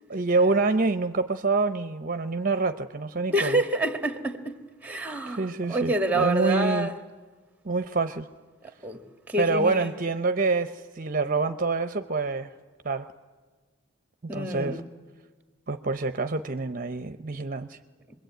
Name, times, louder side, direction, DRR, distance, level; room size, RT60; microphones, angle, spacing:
voice 1, 0.1-3.6 5.3-6.9 7.6-8.3 9.4-12.5 12.8-13.1 14.3-14.8 15.7-17.8, right 3 dB, 40° right, 0.7 m, -26 dB
voice 2, 3.3-7.0 8.8-9.9 14.3-14.8, right 1 dB, 10° right, 1.7 m, -28 dB
26.5 x 22.0 x 9.2 m
head